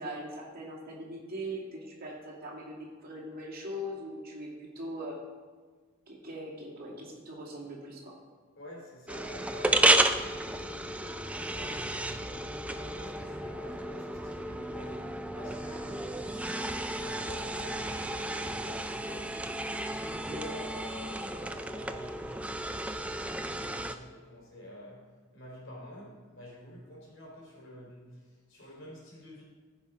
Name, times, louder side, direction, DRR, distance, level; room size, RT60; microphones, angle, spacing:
voice 1, 0.0-5.2 6.1-8.1 20.3-20.5, equal, 45° right, -3 dB, 2.4 m, -41 dB
voice 2, 8.6-29.4, equal, 55° left, -3 dB, 3.5 m, -49 dB
sound 1, 9.1-24.0, right 1 dB, 5° right, 0.3 m, -32 dB
15.0 x 5.7 x 4.9 m, 1.5 s
head